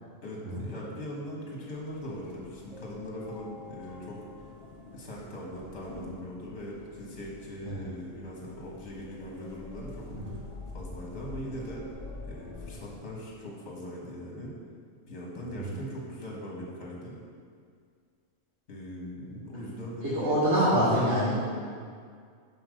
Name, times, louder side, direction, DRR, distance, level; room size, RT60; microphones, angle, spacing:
voice 1, 0.2-4.4 4.9-10.4 10.7-11.9 12.2-14.5 15.1-17.1 18.7-20.4 20.7-20.8, equal, 55° left, -3 dB, 1.7 m, -40 dB
sound 1, 1.7-13.0, left 3 dB, 30° left, 1.3 m, -46 dB
voice 2, 20.0-21.3, equal, 60° right, -13 dB, 2.2 m, -26 dB
5.8 x 5.1 x 6.4 m, 2.1 s
omnidirectional pair, 1.4 m